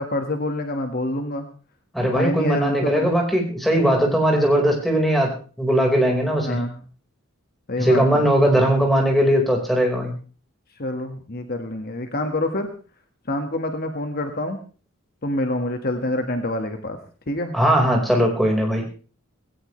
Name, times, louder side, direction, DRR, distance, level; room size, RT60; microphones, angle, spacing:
voice 1, 0.0-1.5 2.0-3.1 6.4-6.8 7.7-8.3 10.8-12.7 13.3-14.6 15.2-17.0 17.3-17.5, left 1 dB, 45° left, 5 dB, 1.8 m, -26 dB
voice 2, 1.9-5.3 5.6-6.6 7.8-10.1 17.5-18.8, equal, ahead, 1 dB, 4.8 m, -19 dB
19.0 x 17.5 x 3.3 m, 0.38 s
head